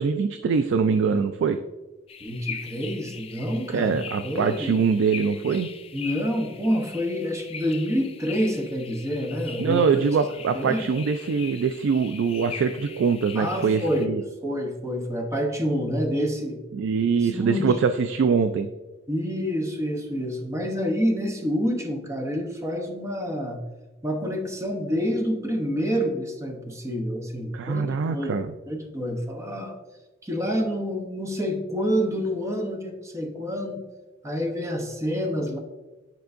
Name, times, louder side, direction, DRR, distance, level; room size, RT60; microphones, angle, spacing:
voice 1, 0.0-1.6 3.7-5.7 9.6-14.2 16.7-18.7 27.5-28.5, right 5 dB, 65° right, 9 dB, 0.3 m, -23 dB
sound 1, 2.1-14.1, left 6 dB, 30° left, 0.4 m, -41 dB
voice 2, 2.2-3.9 4.2-4.8 5.9-9.8 10.5-10.8 13.4-14.1 14.4-16.6 17.2-17.7 19.1-23.6 24.0-28.4 28.7-29.8 30.2-33.9 34.2-35.6, equal, 15° right, 2 dB, 0.8 m, -27 dB
9.4 x 4.5 x 2.5 m, 1.1 s
head